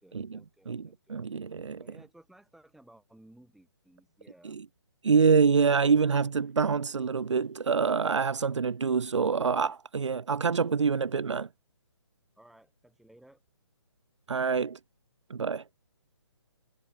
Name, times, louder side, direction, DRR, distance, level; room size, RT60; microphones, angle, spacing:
voice 1, 0.0-1.4 1.8-4.6 5.6-6.5 12.3-13.4, right 1 dB, ahead, 6.3 m, -58 dB
voice 2, 0.7-1.8 4.4-4.6 5.0-11.5 14.3-14.8 15.3-15.6, right 5 dB, 85° right, 0.4 m, -26 dB
figure-of-eight pair, 140°, 15 cm